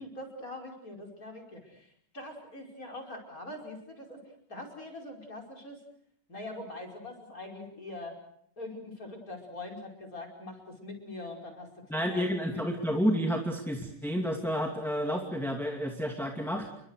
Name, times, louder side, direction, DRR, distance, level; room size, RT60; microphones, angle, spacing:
voice 1, 0.0-1.9 2.1-4.2 4.5-5.8 6.3-8.2 8.6-11.7 12.1-12.6, left 2 dB, 25° left, 5 dB, 5.5 m, -43 dB
voice 2, 11.9-16.7, equal, ahead, 2 dB, 2.0 m, -30 dB
29.5 x 23.5 x 6.6 m, 0.67 s
omnidirectional pair, 3.7 m